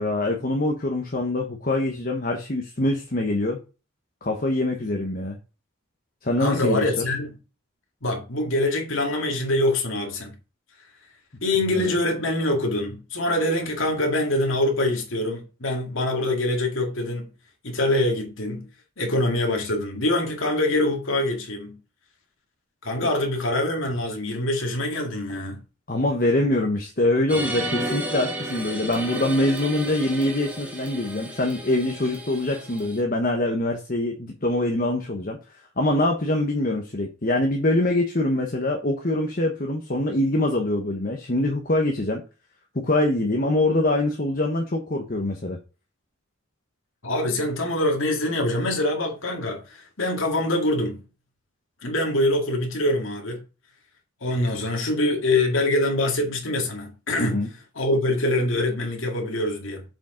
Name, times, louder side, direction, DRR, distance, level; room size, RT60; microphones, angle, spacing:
voice 1, 0.0-3.6 4.2-5.4 6.2-6.8 11.7-11.9 23.0-23.1 25.9-35.4 35.8-42.2 42.7-45.6 57.2-57.5, left 1 dB, 40° left, 1.1 m, -24 dB
voice 2, 6.4-7.4 8.0-10.3 11.4-17.3 17.6-18.7 19.0-21.8 22.8-25.6 47.0-51.0 51.8-53.4 54.2-57.4 57.8-59.8, left 1 dB, 75° left, 2.0 m, -24 dB
sound 1, 27.3-33.0, right 1 dB, 5° right, 1.8 m, -33 dB
7.4 x 5.1 x 3.7 m
head